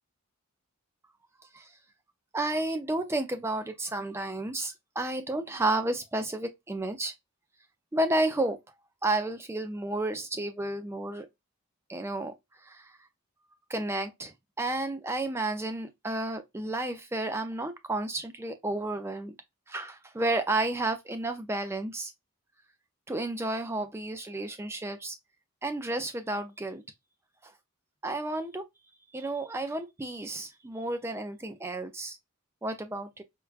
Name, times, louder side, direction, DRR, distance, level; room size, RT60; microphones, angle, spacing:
voice 1, 2.3-7.1 7.9-8.6 9.0-11.3 11.9-12.3 12.6-13.0 13.7-19.3 19.7-22.1 23.1-25.2 25.6-26.8 27.4-27.5 28.0-28.6 29.1-32.2 32.6-33.2, right 2 dB, 10° right, 0.3 m, -31 dB
4.4 x 2.3 x 2.3 m
head